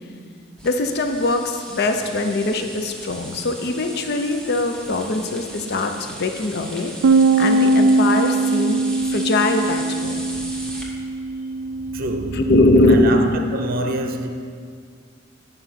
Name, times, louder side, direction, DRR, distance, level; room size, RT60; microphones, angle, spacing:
voice 1, 0.6-6.9 7.4-8.8 9.1-10.2 12.3-13.0, left 2 dB, 55° left, 0.6 m, -21 dB
sound 1, 0.6-10.8, right 1 dB, 5° left, 1.2 m, -37 dB
Bass guitar, 7.0-13.3, right 3 dB, 90° right, 0.3 m, -21 dB
voice 2, 11.9-12.5 12.9-14.3, right 1 dB, 50° right, 0.6 m, -26 dB
9.2 x 5.4 x 5.7 m
head